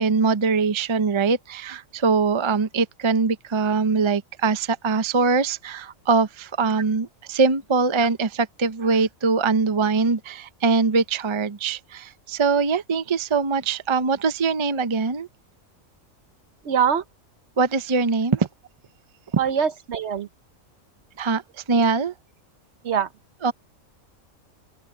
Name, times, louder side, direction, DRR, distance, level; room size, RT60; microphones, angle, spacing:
voice 1, 0.0-15.3 17.6-18.5 21.2-22.1 23.4-23.5, right 4 dB, 30° right, 0.6 m, -22 dB
voice 2, 16.6-17.0 19.4-20.3 22.8-23.1, right 7 dB, 60° right, 1.0 m, -23 dB
open air
omnidirectional pair, 1.4 m